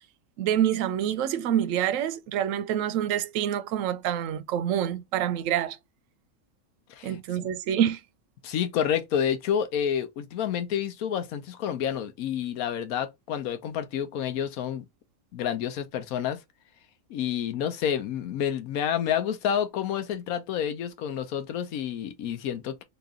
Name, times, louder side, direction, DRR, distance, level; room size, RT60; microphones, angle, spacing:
voice 1, 0.4-5.8 7.0-8.0, right 10 dB, 70° right, 0.9 m, -26 dB
voice 2, 8.4-14.8 15.3-16.4 17.1-22.8, left 9 dB, 80° left, 1.1 m, -29 dB
3.0 x 2.8 x 3.5 m
omnidirectional pair, 1.5 m